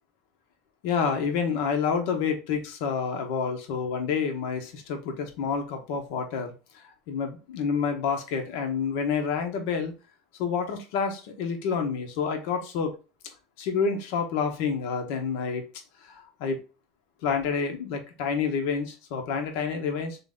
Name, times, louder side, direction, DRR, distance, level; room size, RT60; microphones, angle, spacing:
voice 1, 0.8-9.9 10.4-13.0 13.6-15.6 16.0-16.6 17.2-20.2, left 6 dB, 75° left, 5 dB, 1.1 m, -28 dB
3.8 x 3.3 x 3.7 m, 0.31 s
supercardioid pair, 120°, 0 cm